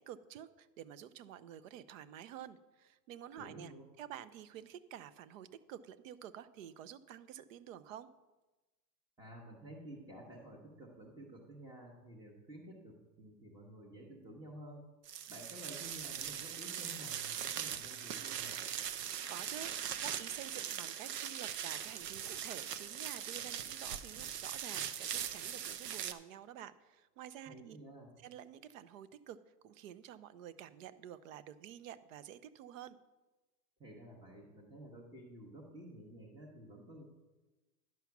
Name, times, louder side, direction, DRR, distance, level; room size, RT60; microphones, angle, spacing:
voice 1, 0.1-8.1 19.3-27.8 28.2-29.4 29.6-33.0, right 10 dB, 55° right, 16 dB, 0.7 m, -50 dB
voice 2, 3.4-3.8 9.2-14.9 15.3-18.6 27.5-28.1 33.8-37.0, right 1 dB, 10° right, -2 dB, 0.9 m, -52 dB
sound 1, 15.1-26.1, right 9 dB, 85° right, 0.8 m, -41 dB
10.5 x 5.7 x 5.9 m, 1.1 s
hypercardioid pair, 140°, 48 cm